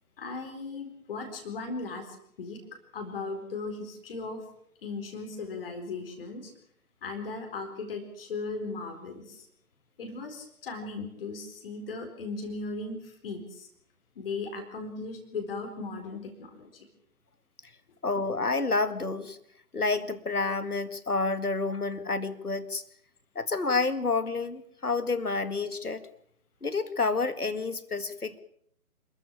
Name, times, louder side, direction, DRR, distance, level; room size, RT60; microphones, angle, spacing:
voice 1, 0.2-2.6 2.9-4.4 4.8-6.5 7.0-9.5 10.0-13.7 14.2-16.9, left 3 dB, 40° left, 4 dB, 4.3 m, -37 dB
voice 2, 18.0-19.4 19.7-22.8 23.4-26.0 26.6-28.4, left 3 dB, 80° left, 13 dB, 2.1 m, -29 dB
27.5 x 14.0 x 8.6 m, 0.66 s
figure-of-eight pair, 140°, 44 cm